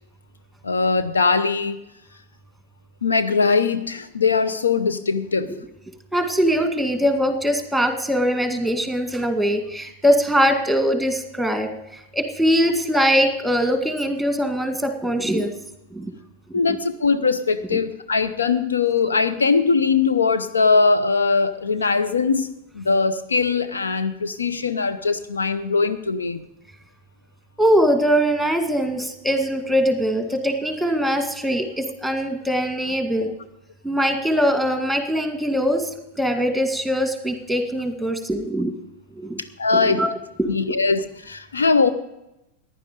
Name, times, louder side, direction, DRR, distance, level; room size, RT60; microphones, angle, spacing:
voice 1, 0.6-1.8 3.0-5.5 16.5-22.5 22.7-26.4 39.6-40.0 40.5-41.9, left 4 dB, 75° left, 11 dB, 0.7 m, -21 dB
voice 2, 6.1-15.5 15.9-16.1 27.6-33.3 33.8-35.9 36.2-38.7 39.2-39.4 39.7-40.1 40.4-40.6, equal, ahead, 6 dB, 2.0 m, -22 dB
15.0 x 10.5 x 5.2 m, 0.89 s
figure-of-eight pair, 90°, 0 cm